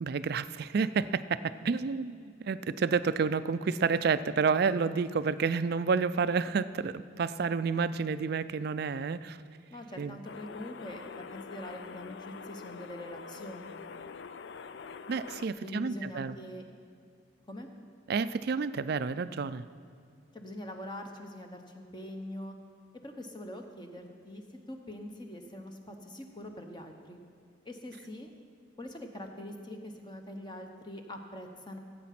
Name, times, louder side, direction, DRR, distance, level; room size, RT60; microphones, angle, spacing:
voice 1, 0.0-9.4 10.0-10.2 15.1-16.4 18.1-19.6, right 5 dB, 50° right, 14 dB, 0.3 m, -30 dB
voice 2, 9.7-13.8 15.6-16.6 17.5-17.7 20.3-22.5 23.0-24.4 24.7-27.2 27.6-28.3 28.8-31.8, left 1 dB, 20° left, 4 dB, 0.9 m, -43 dB
sound 1, 10.2-15.5, left 5 dB, 60° left, 0.4 m, -45 dB
16.0 x 8.4 x 5.9 m, 2.2 s
head